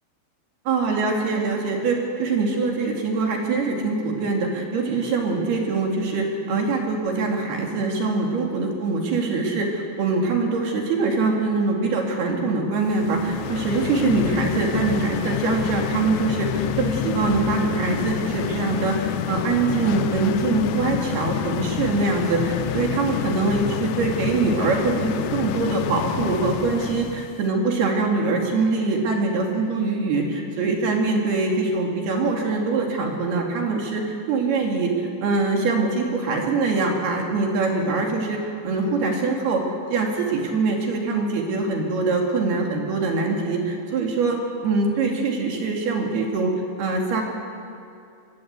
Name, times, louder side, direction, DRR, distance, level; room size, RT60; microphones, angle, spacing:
voice 1, 0.7-39.6 39.9-46.5 46.8-47.2, right 3 dB, 55° right, 0 dB, 4.1 m, -23 dB
sound 1, 12.9-27.4, left 11 dB, 80° left, 2.8 m, -28 dB
25.0 x 20.5 x 8.3 m, 2.6 s
omnidirectional pair, 5.9 m